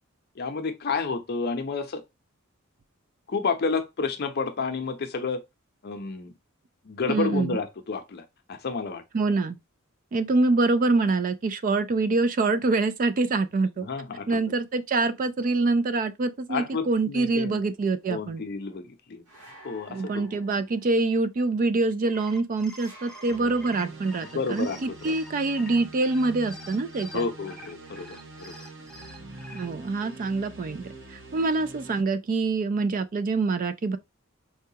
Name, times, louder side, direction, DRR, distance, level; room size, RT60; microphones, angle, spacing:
voice 1, 0.4-2.0 3.3-5.4 5.8-6.3 6.8-9.0 13.8-14.4 16.5-17.6 18.1-19.2 19.6-20.6 24.2-25.2 27.1-28.5, left 4 dB, 50° left, 0.6 m, -31 dB
voice 2, 7.1-7.6 9.1-9.6 10.1-13.9 14.3-18.4 19.9-27.2 29.5-34.0, right 3 dB, 40° right, 0.3 m, -25 dB
sound 1, 19.3-20.9 22.7-24.1, right 1 dB, 85° right, 1.3 m, -50 dB
sound 2, 21.9-29.7, left 1 dB, ahead, 0.6 m, -47 dB
sound 3, 23.3-32.0, right 3 dB, 65° right, 0.9 m, -44 dB
4.6 x 2.2 x 2.7 m
head